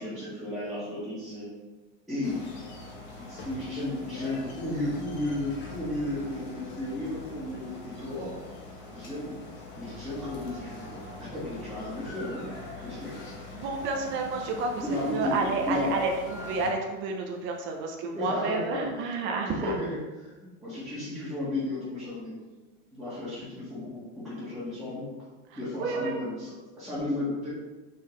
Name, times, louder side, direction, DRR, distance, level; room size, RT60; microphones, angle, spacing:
voice 1, 0.0-1.5 2.1-2.4 3.2-8.4 8.9-9.3 9.8-12.5 12.8-13.2 14.8-15.4 15.6-16.0 18.1-19.2 19.5-20.3 20.6-22.3 22.9-25.1 25.6-27.5, left 1 dB, ahead, -13 dB, 1.8 m, -33 dB
sound 1, 2.2-16.7, left 2 dB, 30° left, 1.1 m, -43 dB
voice 2, 13.6-14.8 15.1-19.7 25.8-26.2, right 3 dB, 35° right, 3 dB, 0.7 m, -30 dB
5.7 x 5.6 x 3.2 m, 1.2 s
supercardioid pair, 165°, 34 cm